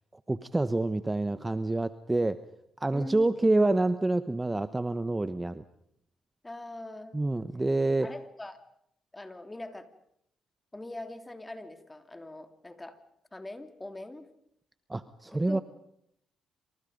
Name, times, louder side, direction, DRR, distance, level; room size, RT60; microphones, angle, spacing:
voice 1, 0.3-2.4 2.8-5.6 7.1-8.1 14.9-15.6, right 2 dB, 15° right, 12 dB, 1.0 m, -27 dB
voice 2, 2.9-3.5 6.4-7.2 8.0-8.6 9.1-9.9 10.7-13.0 13.3-14.3 15.2-15.6, left 2 dB, 15° left, 8 dB, 2.9 m, -42 dB
28.5 x 26.5 x 5.3 m, 0.72 s
cardioid pair, 90°, 0 cm